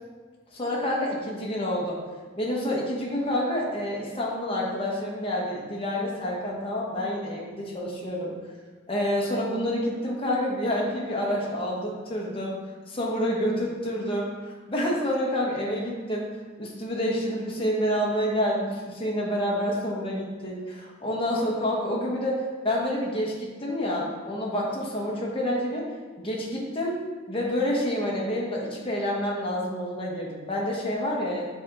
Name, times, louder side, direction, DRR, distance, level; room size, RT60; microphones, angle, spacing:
voice 1, 0.5-2.0 2.4-8.3 8.9-12.6 12.9-16.3 16.6-25.9 26.2-27.0 27.3-31.5, equal, 30° left, -3 dB, 1.2 m, -28 dB
7.5 x 3.5 x 3.9 m, 1.5 s
head